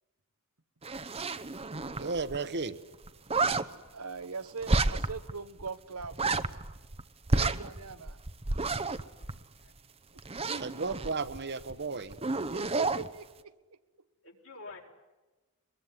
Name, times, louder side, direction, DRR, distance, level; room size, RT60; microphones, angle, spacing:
sound 1, 0.8-2.4 2.6-2.7 2.9-3.6 4.6-5.3 5.6-5.7 6.0-7.0 7.3-9.8 10.2-11.7 12.0-13.1, right 3 dB, 25° right, 0.9 m, -30 dB
voice 1, 2.0-2.8 10.5-12.2, right 4 dB, 50° right, 1.2 m, -34 dB
voice 2, 3.9-6.4 7.3-8.2 12.5-13.5, right 5 dB, 80° right, 1.3 m, -41 dB
voice 3, 8.9-9.8 14.2-14.8, left 3 dB, 65° left, 5.2 m, -51 dB
24.5 x 22.0 x 9.7 m
head